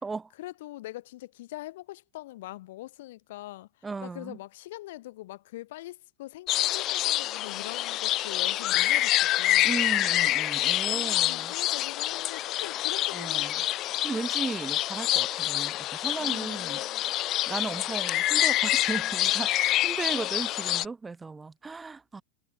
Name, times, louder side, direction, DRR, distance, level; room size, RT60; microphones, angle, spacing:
voice 1, 0.4-9.7 10.9-13.5 16.2-17.1 19.6-19.8, left 17 dB, 55° left, 3.5 m, -43 dB
voice 2, 3.8-4.4 9.6-11.5 13.1-13.5 14.0-16.8 17.5-22.2, right 4 dB, 10° right, 3.6 m, -36 dB
sound 1, 6.5-20.9, left 15 dB, 35° left, 0.6 m, -27 dB
figure-of-eight pair, 90°, 0 cm